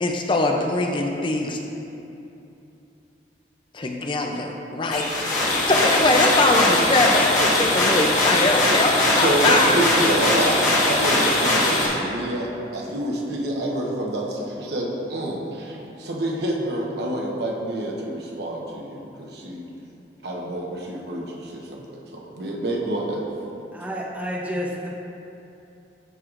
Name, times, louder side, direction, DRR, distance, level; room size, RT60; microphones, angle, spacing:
voice 1, 0.0-1.6 3.7-9.7, left 2 dB, 30° left, 2 dB, 0.4 m, -22 dB
sound 1, 4.9-11.9, left 2 dB, 45° left, 1.4 m, -20 dB
voice 2, 9.1-19.7 20.2-21.8 22.1-23.2, right 1 dB, 70° right, -2 dB, 1.0 m, -27 dB
voice 3, 23.7-24.9, equal, 10° right, -3 dB, 0.7 m, -30 dB
13.0 x 4.7 x 2.5 m, 2.8 s
head